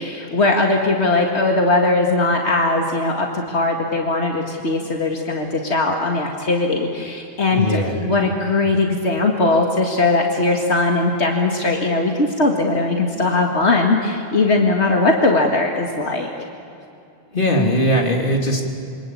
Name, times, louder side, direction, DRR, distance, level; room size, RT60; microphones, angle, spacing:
voice 1, 0.0-16.3, left 2 dB, 80° left, 1 dB, 2.3 m, -19 dB
voice 2, 7.5-8.0 17.3-18.6, equal, 50° left, 1 dB, 3.4 m, -19 dB
27.0 x 25.5 x 8.5 m, 2.6 s
omnidirectional pair, 1.1 m